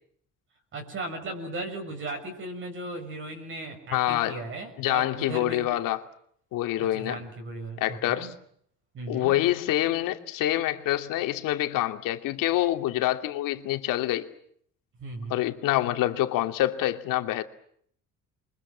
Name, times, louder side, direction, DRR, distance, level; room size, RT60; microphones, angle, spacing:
voice 1, 0.7-5.7 6.8-8.3 8.9-9.4 15.0-15.4, right 2 dB, 35° right, 6.7 m, -37 dB
voice 2, 3.9-4.4 4.8-6.0 6.5-7.2 7.8-8.3 9.1-14.3 15.3-17.4, left 14 dB, 75° left, 2.8 m, -26 dB
29.0 x 24.0 x 7.5 m
cardioid pair, 175°, 33 cm